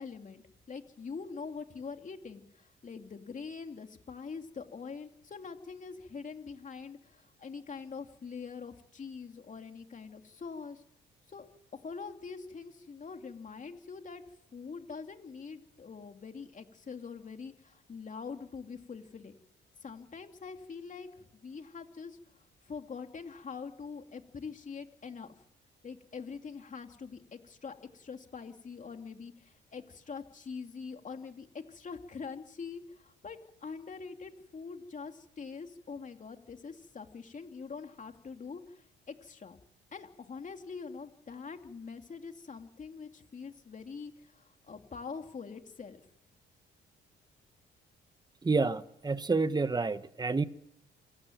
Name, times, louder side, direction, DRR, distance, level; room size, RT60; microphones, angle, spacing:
voice 1, 0.0-10.8 11.3-14.2 14.5-19.3 19.8-25.3 25.8-39.6 39.9-46.0, left 5 dB, 40° left, 2.7 m, -44 dB
voice 2, 48.4-50.4, right 3 dB, 20° right, 1.3 m, -29 dB
27.0 x 14.5 x 9.3 m
cardioid pair, 90°, 20 cm